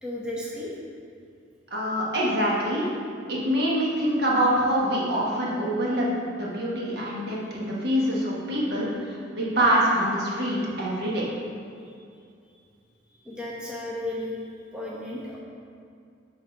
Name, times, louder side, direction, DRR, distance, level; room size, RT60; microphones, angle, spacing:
voice 1, 0.0-0.7 11.9-12.0 13.2-14.4 14.7-15.4, left 1 dB, 5° right, -6 dB, 0.9 m, -34 dB
voice 2, 1.7-2.9 3.3-11.2, equal, 60° right, -5 dB, 1.2 m, -25 dB
5.7 x 4.2 x 5.2 m, 2.4 s
head